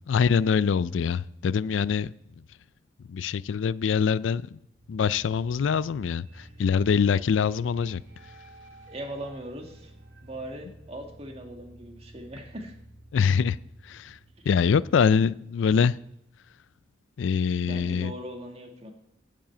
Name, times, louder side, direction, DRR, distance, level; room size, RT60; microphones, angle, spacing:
voice 1, 0.1-2.1 3.1-4.6 4.9-8.0 13.1-13.6 13.8-14.2 14.5-16.0 17.2-18.1, left 6 dB, 90° left, 0.4 m, -24 dB
sound 1, 4.8-15.7, right 1 dB, 85° right, 1.7 m, -51 dB
voice 2, 8.9-9.9 10.2-12.8 14.4-14.5 17.6-18.9, right 1 dB, 35° right, 1.8 m, -40 dB
10.5 x 7.6 x 8.6 m
head